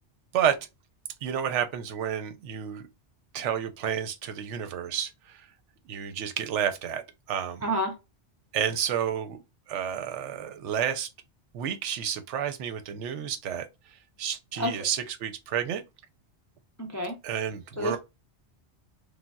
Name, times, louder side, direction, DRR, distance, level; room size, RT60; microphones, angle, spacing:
voice 1, 1.2-2.9 3.3-5.4 5.9-7.0 7.3-7.6 8.5-9.4 9.7-11.1 11.5-13.7 14.2-15.8 17.2-18.0, right 9 dB, 85° right, 0.9 m, -30 dB
voice 2, 7.6-8.0 14.5-14.8 16.8-17.2 17.8-18.0, equal, 25° left, 0.4 m, -29 dB
3.4 x 2.1 x 2.2 m
omnidirectional pair, 1.2 m